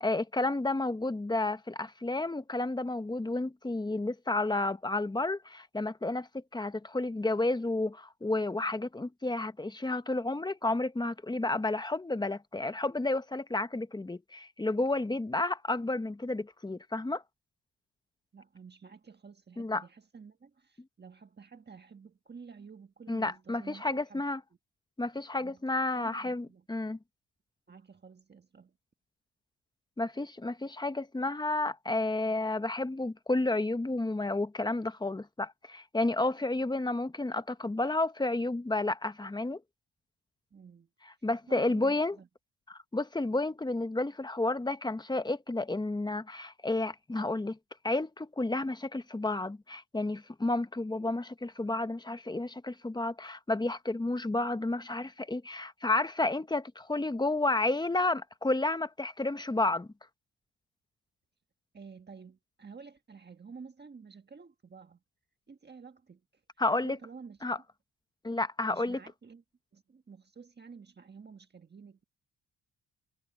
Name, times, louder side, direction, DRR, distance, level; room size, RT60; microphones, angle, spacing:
voice 1, 0.0-17.2 19.6-19.8 23.1-24.4 25.0-27.0 30.0-39.6 41.2-42.2 42.7-47.6 47.8-59.9 66.6-67.0 67.4-67.6 68.2-69.0, left 2 dB, 10° left, 0.9 m, -31 dB
voice 2, 18.3-24.2 25.4-25.6 25.9-26.7 27.7-28.8 40.5-40.9 41.2-42.3 61.7-65.0 65.5-66.4 66.8-67.5 68.7-69.4 69.7-72.0, right 5 dB, 30° right, 1.5 m, -51 dB
cardioid pair, 125°, 36 cm